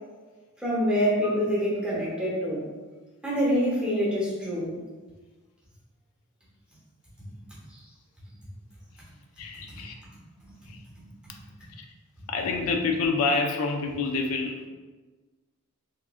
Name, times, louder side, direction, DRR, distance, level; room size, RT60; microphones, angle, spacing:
voice 1, 0.6-2.6 3.2-4.8 7.7-7.8, equal, 5° right, -8 dB, 0.7 m, -26 dB
voice 2, 9.4-9.9 10.7-10.8 11.8-11.9 12.3-14.7, left 4 dB, 75° left, 3 dB, 0.3 m, -27 dB
2.9 x 2.4 x 2.3 m, 1.3 s
head